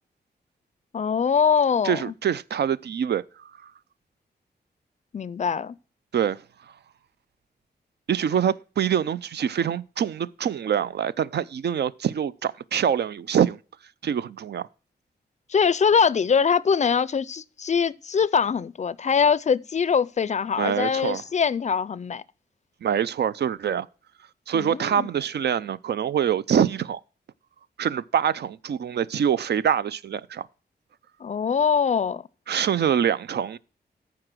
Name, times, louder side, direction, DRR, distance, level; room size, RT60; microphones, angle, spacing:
voice 1, 0.9-2.0 5.1-5.8 15.5-22.2 24.5-25.1 31.2-32.2, left 6 dB, 45° left, 0.4 m, -23 dB
voice 2, 1.8-3.2 3.6-3.7 6.1-6.4 8.1-13.6 14.0-14.7 20.6-21.2 22.8-23.9 24.5-27.0 27.8-30.5 32.5-33.6, right 8 dB, 75° right, 0.5 m, -25 dB
14.0 x 4.9 x 6.1 m
wide cardioid pair, 125°, 17 cm